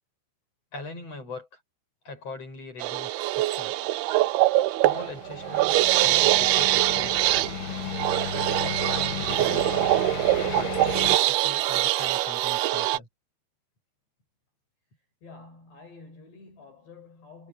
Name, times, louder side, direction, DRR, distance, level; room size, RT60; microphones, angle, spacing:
voice 1, 0.7-1.5 2.1-3.8 4.8-7.3 8.6-9.9 10.5-10.8 11.1-13.1, left 3 dB, 30° left, 9.0 m, -41 dB
sound 1, 2.8-13.0, right 16 dB, 85° right, 2.2 m, -23 dB
sound 2, 4.9-11.2, left 10 dB, 85° left, 4.1 m, -35 dB
voice 2, 15.2-17.5, left 3 dB, 60° left, 8.3 m, -49 dB
omnidirectional pair, 5.4 m